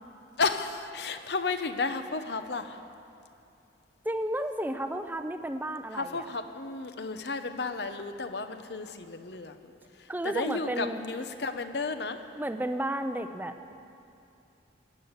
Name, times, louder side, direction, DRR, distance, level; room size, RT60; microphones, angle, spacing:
voice 1, 0.4-2.8 5.9-9.6 10.2-12.2, left 4 dB, 65° left, 9 dB, 0.9 m, -32 dB
voice 2, 4.0-6.3 10.1-11.0 12.4-13.7, right 1 dB, 10° right, 8 dB, 0.6 m, -32 dB
17.0 x 9.8 x 8.0 m, 2.6 s
head